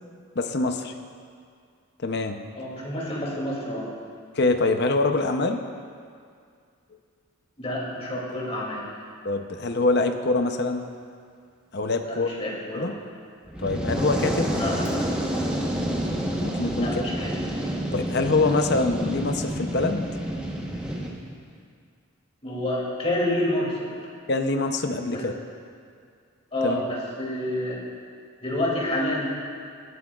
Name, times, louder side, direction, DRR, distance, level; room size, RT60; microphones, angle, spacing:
voice 1, 0.4-0.9 2.0-2.4 4.4-5.6 9.2-10.8 11.7-12.3 12.7-12.9 13.6-14.5 16.4-16.9 17.9-20.1 24.3-25.3 26.6-26.9, left 3 dB, 50° left, 6 dB, 0.7 m, -24 dB
voice 2, 2.5-3.9 7.6-8.8 12.0-13.0 14.6-14.9 16.7-17.3 22.4-23.9 25.1-25.2 26.5-27.8 28.4-29.3, left 1 dB, 30° left, -5 dB, 2.7 m, -28 dB
Fire, 13.5-21.1, equal, 5° right, 1.1 m, -28 dB
19.0 x 11.5 x 2.4 m, 2.2 s
head